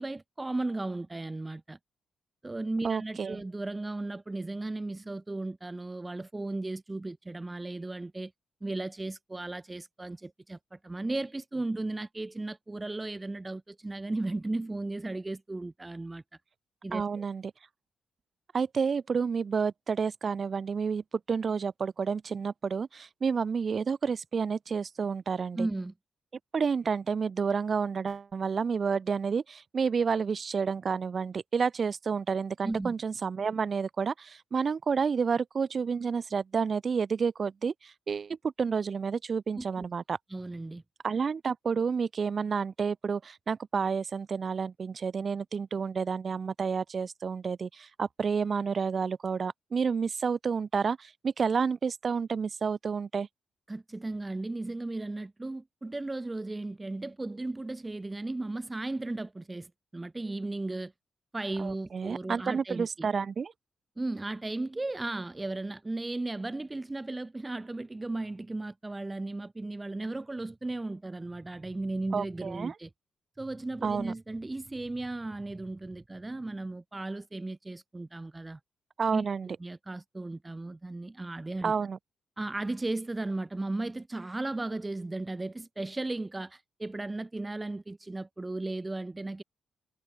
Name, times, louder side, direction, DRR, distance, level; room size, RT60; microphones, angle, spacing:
voice 1, 0.0-1.8 2.4-8.3 8.6-16.2 16.8-17.3 25.6-25.9 32.6-32.9 39.6-39.9 40.3-40.8 53.7-60.9 61.3-63.1 64.0-72.9 73.4-78.6 79.1-81.7 82.4-89.4, right 2 dB, 10° right, 3.4 m, -35 dB
voice 2, 2.8-3.4 16.9-17.5 18.5-25.7 26.5-40.2 41.0-53.3 61.6-63.5 72.1-72.7 73.8-74.1 79.0-79.6 81.6-82.0, right 5 dB, 35° right, 1.8 m, -30 dB
wide cardioid pair, 170°, 0 cm